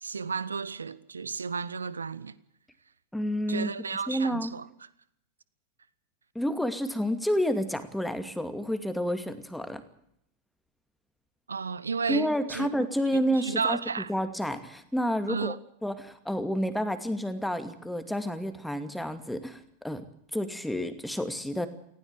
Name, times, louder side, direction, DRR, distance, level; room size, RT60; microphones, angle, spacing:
voice 1, 0.0-2.4 3.5-4.7 11.5-12.7 13.4-14.1 15.3-15.6, right 5 dB, 75° right, 1.0 m, -32 dB
voice 2, 3.1-3.7 4.1-4.5 6.3-9.8 12.1-15.5 15.8-20.0 20.3-21.7, equal, ahead, 2.4 m, -30 dB
19.0 x 16.5 x 9.2 m
figure-of-eight pair, 90°, 0 cm